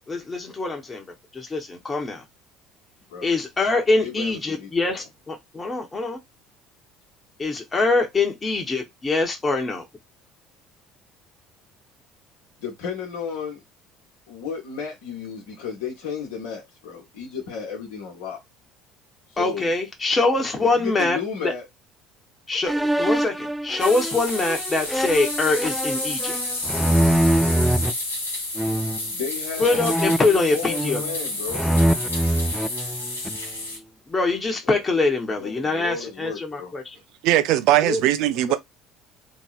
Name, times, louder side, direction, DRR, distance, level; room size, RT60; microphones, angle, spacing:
voice 1, 0.1-1.0 1.3-2.2 3.2-6.2 7.4-9.8 19.4-21.2 21.4-21.5 22.5-26.3 29.6-31.0 34.1-36.9 37.8-38.0, left 3 dB, 25° left, 1.1 m, -24 dB
voice 2, 3.9-5.0 12.6-13.6 14.3-18.4 19.3-19.7 20.6-21.7 29.1-29.9 30.5-31.7 34.6-34.8 35.4-36.7 38.3-38.6, left 6 dB, 70° left, 1.1 m, -33 dB
sound 1, 22.7-27.9 28.6-29.1 29.7-31.2 31.5-33.5, right 1 dB, ahead, 0.4 m, -24 dB
sound 2, 23.8-33.8, left 2 dB, 85° left, 0.9 m, -30 dB
voice 3, 37.2-38.6, right 14 dB, 60° right, 0.5 m, -19 dB
2.8 x 2.8 x 2.5 m
figure-of-eight pair, 60°, 0 cm